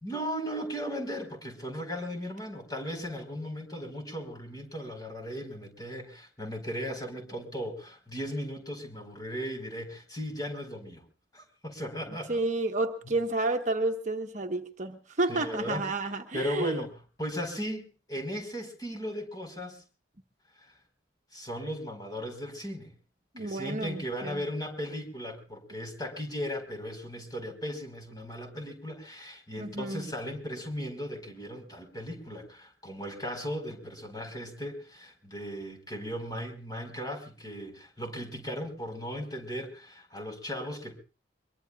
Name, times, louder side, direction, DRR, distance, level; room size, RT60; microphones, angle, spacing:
voice 1, 0.0-11.0 11.3-12.4 15.3-15.8 16.3-19.8 21.3-22.9 23.4-41.0, equal, 20° left, 5 dB, 4.8 m, -37 dB
voice 2, 12.3-16.8 23.3-24.4 29.6-30.1, right 2 dB, 40° right, 4 dB, 1.2 m, -31 dB
24.5 x 23.0 x 2.4 m, 0.36 s
head